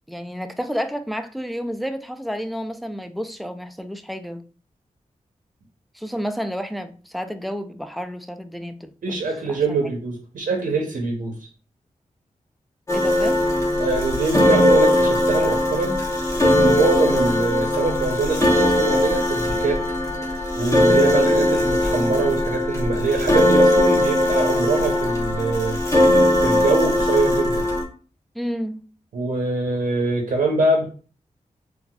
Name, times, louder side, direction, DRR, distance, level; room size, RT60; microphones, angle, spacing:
voice 1, 0.1-4.4 5.9-9.2 9.5-9.6 12.9-13.4 28.4-28.8, equal, ahead, 0.3 m, -30 dB
voice 2, 9.0-11.4 13.8-19.8 20.3-25.8 26.4-27.7 29.1-30.9, right 3 dB, 85° right, 0.6 m, -24 dB
sound 1, 12.9-27.8, left 1 dB, 20° left, 1.0 m, -19 dB
3.8 x 2.4 x 2.2 m
wide cardioid pair, 80°, 14 cm